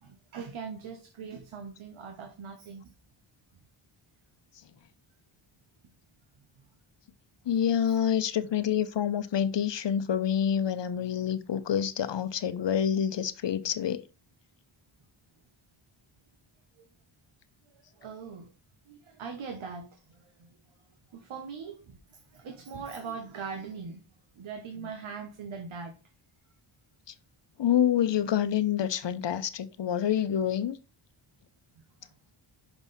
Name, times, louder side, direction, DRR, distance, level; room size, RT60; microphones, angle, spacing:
voice 1, 0.0-2.9 6.6-6.7 16.8-16.9 17.7-18.5 18.9-20.5 21.1-24.0 24.4-26.0, right 5 dB, 70° right, 1.2 m, -41 dB
voice 2, 7.5-14.0 27.6-30.8, left 9 dB, 60° left, 0.8 m, -27 dB
6.0 x 5.4 x 4.1 m
wide cardioid pair, 100°, 50 cm